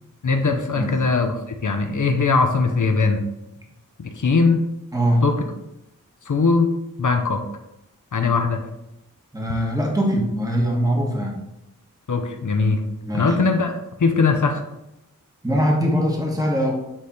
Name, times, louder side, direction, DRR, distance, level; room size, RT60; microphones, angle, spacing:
voice 1, 0.2-3.2 4.0-4.7 5.2-5.4 6.3-6.7 7.0-7.4 8.1-8.7 12.1-12.8 13.1-14.6, left 4 dB, 65° left, 5 dB, 0.8 m, -20 dB
voice 2, 4.9-5.2 9.3-11.4 13.0-13.3 15.4-16.7, equal, 10° right, -1 dB, 1.4 m, -22 dB
8.9 x 3.3 x 4.2 m, 0.91 s
wide cardioid pair, 90°, 33 cm